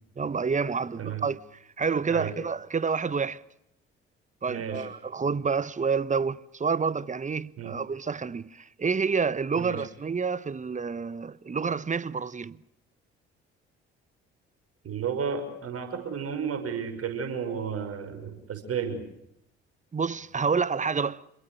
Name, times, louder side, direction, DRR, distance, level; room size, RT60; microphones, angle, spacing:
voice 1, 0.2-1.4 1.8-3.4 4.4-12.6 19.9-21.2, right 5 dB, 25° right, 1.1 m, -28 dB
voice 2, 4.5-4.9 7.6-7.7 9.6-9.9 14.8-19.0, right 6 dB, 50° right, 6.0 m, -32 dB
27.0 x 22.5 x 6.5 m
hypercardioid pair, 50°, 30 cm